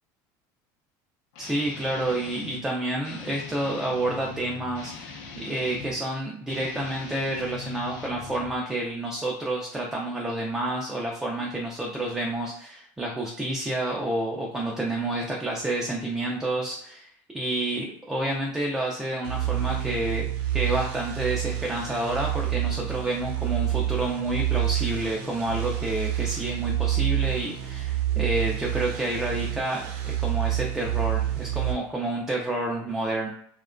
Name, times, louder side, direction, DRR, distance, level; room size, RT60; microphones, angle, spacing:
Guitar, 1.3-2.7 3.0-6.0 6.4-8.6, left 5 dB, 75° left, 0.6 m, -41 dB
voice 1, 1.4-20.3 20.5-33.3, right 1 dB, 5° right, -2 dB, 0.3 m, -29 dB
sound 1, 19.2-31.7, right 13 dB, 60° right, 0.6 m, -28 dB
2.8 x 2.2 x 2.4 m, 0.68 s
cardioid pair, 155°, 10 cm